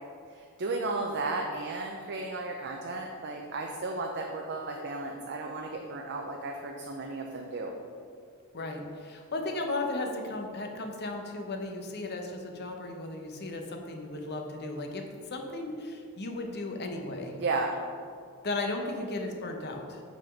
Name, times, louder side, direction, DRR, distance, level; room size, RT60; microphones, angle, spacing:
voice 1, 0.3-7.7 17.3-17.7, right 3 dB, 50° right, 1 dB, 0.5 m, -34 dB
voice 2, 8.5-17.4 18.4-20.0, left 2 dB, 50° left, 3 dB, 0.8 m, -35 dB
6.0 x 4.3 x 5.8 m, 2.2 s
head